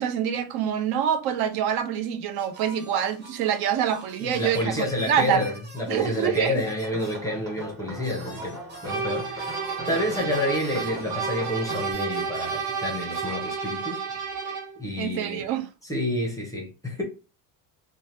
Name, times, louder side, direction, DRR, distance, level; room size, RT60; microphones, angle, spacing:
voice 1, 0.0-5.4 5.9-6.6 15.0-15.7, right 9 dB, 60° right, 0.6 m, -26 dB
sound 1, 2.4-7.2 7.6-7.7 8.0-14.0, right 1 dB, 25° right, 1.0 m, -45 dB
voice 2, 4.2-9.6 9.9-14.0 14.8-15.5 15.8-17.0, left 1 dB, 10° left, 0.6 m, -29 dB
sound 2, 6.8-11.9, equal, 10° right, 1.4 m, -40 dB
sound 3, 8.9-14.8, right 5 dB, 40° right, 1.4 m, -31 dB
2.7 x 2.1 x 3.1 m
cardioid pair, 160°, 43 cm